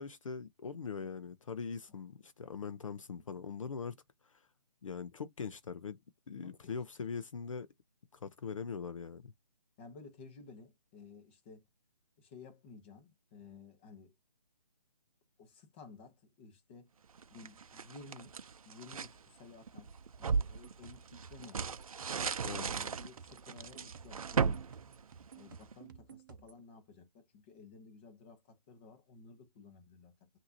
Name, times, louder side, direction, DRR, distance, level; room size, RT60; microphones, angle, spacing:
voice 1, 0.0-4.0 4.2-4.4 4.8-6.0 6.3-7.7 8.1-9.3 22.4-22.7, left 5 dB, 55° left, 0.6 m, -41 dB
voice 2, 6.4-6.7 9.8-11.7 12.2-14.1 15.4-16.9 17.3-18.4 18.6-19.9 20.2-21.7 22.5-24.6 25.3-30.3, left 4 dB, 15° left, 1.0 m, -54 dB
sound 1, 17.2-19.2 19.7-25.7, right 5 dB, 60° right, 0.6 m, -37 dB
sound 2, 20.4-26.6, right 6 dB, 30° right, 0.9 m, -55 dB
5.8 x 2.8 x 2.8 m
hypercardioid pair, 165°, 20 cm